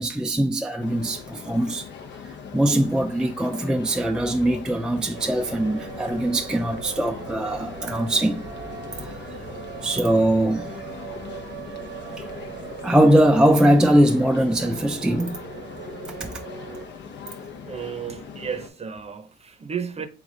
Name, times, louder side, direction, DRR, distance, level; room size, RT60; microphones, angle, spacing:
voice 1, 0.0-1.9 2.5-8.4 8.9-9.4 9.8-10.7 12.2-12.3 12.8-15.4 16.2-16.3, right 1 dB, 5° right, 0.3 m, -21 dB
sound 1, 0.8-18.7, left 6 dB, 65° left, 0.7 m, -40 dB
sound 2, 5.1-16.9, right 6 dB, 65° right, 0.8 m, -39 dB
voice 2, 17.6-20.1, right 7 dB, 30° right, 0.7 m, -33 dB
3.6 x 3.3 x 3.8 m
cardioid pair, 90°, 20 cm